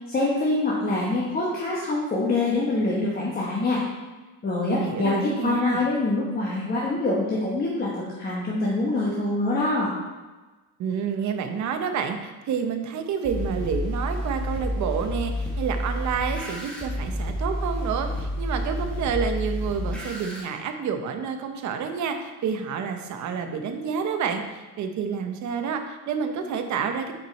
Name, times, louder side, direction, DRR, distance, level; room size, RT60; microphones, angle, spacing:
voice 1, 0.1-3.8 4.4-9.9, left 2 dB, 25° left, -5 dB, 1.1 m, -25 dB
voice 2, 4.7-5.8 10.8-27.1, right 6 dB, 50° right, 6 dB, 0.8 m, -29 dB
sound 1, 13.2-20.4, equal, 5° left, 1.2 m, -30 dB
7.3 x 4.8 x 4.1 m, 1.2 s
cardioid pair, 160°, 37 cm